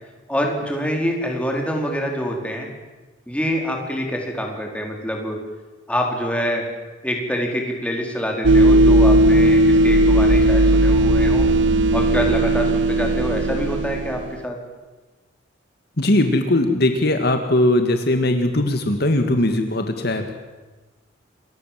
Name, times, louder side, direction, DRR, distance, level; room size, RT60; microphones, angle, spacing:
voice 1, 0.3-2.7 3.3-5.4 5.9-6.6 7.0-11.5 11.9-14.6, equal, 5° left, 1 dB, 4.7 m, -25 dB
sound 1, 8.4-14.3, right 1 dB, 65° right, 0.7 m, -16 dB
voice 2, 16.0-20.3, left 1 dB, 55° left, 6 dB, 2.1 m, -19 dB
28.0 x 22.5 x 7.7 m, 1.2 s
head